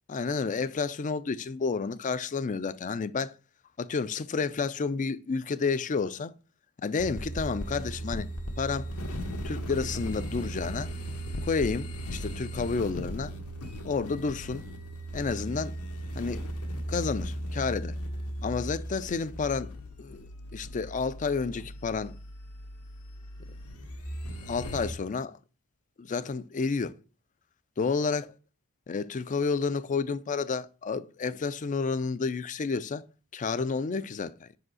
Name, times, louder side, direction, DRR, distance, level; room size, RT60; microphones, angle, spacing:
voice 1, 0.1-3.4 3.8-6.3 6.8-8.3 8.6-8.9 9.4-10.9 11.4-13.3 13.8-14.6 15.1-15.8 16.2-16.4 16.9-18.0 18.4-19.7 20.0-22.2 24.5-25.4 26.0-27.0 27.8-28.3 28.9-33.1 33.3-34.5, left 4 dB, 35° left, 0.4 m, -30 dB
sound 1, 7.0-24.9, right 1 dB, 85° left, 1.4 m, -37 dB
5.3 x 4.9 x 6.2 m
head